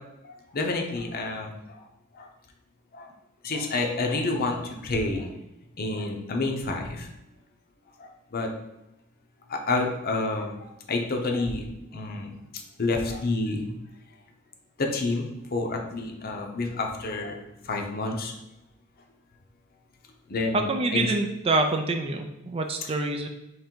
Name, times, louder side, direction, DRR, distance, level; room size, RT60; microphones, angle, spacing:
voice 1, 0.2-1.8 2.1-2.3 2.9-3.1 3.4-5.3 5.8-7.1 8.0-8.5 9.5-10.5 10.9-11.7 11.9-13.8 14.8-18.3 20.3-21.1, left 3 dB, 45° left, 2 dB, 0.7 m, -29 dB
voice 2, 20.5-23.3, right 2 dB, 30° right, 4 dB, 0.4 m, -26 dB
3.7 x 3.2 x 4.5 m, 0.88 s
head